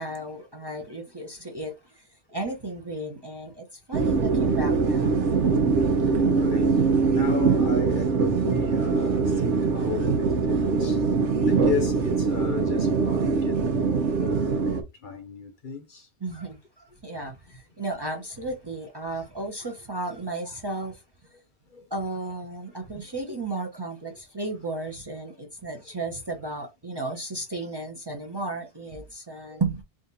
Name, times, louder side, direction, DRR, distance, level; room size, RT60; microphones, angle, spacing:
voice 1, 0.0-2.0 2.3-5.3 9.9-10.0 11.4-11.7 16.2-21.0 21.9-29.8, right 2 dB, 25° right, 0.8 m, -34 dB
sound 1, 3.9-14.8, right 4 dB, 85° right, 1.1 m, -23 dB
voice 2, 5.8-11.0 11.4-16.1 21.7-21.9 23.0-23.2 29.5-29.6, left 6 dB, 50° left, 0.9 m, -35 dB
3.7 x 2.5 x 4.0 m
omnidirectional pair, 1.2 m